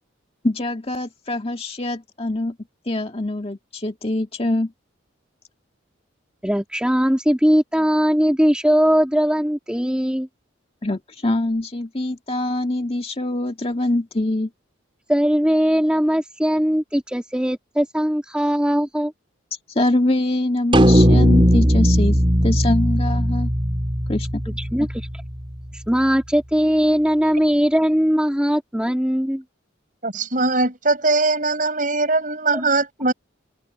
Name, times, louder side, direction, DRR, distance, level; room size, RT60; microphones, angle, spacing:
voice 1, 0.4-2.6 2.9-4.7 10.8-14.5 19.8-23.5 24.1-24.4, left 1 dB, 30° left, 2.0 m, -23 dB
voice 2, 6.4-10.3 15.1-19.1 24.7-25.1 25.7-29.4, equal, 5° right, 2.3 m, -20 dB
sound 1, 20.7-25.2, equal, 25° right, 3.7 m, -17 dB
voice 3, 30.0-33.1, right 3 dB, 40° right, 6.3 m, -21 dB
head